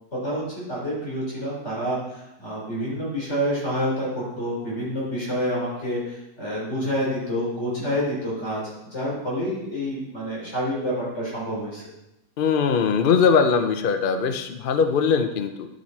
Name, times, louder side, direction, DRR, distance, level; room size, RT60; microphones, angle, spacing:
voice 1, 0.1-11.8, equal, 45° left, -5 dB, 4.4 m, -28 dB
voice 2, 12.4-15.7, left 6 dB, 60° left, 8 dB, 0.5 m, -21 dB
10.5 x 7.2 x 4.6 m, 0.91 s
omnidirectional pair, 1.7 m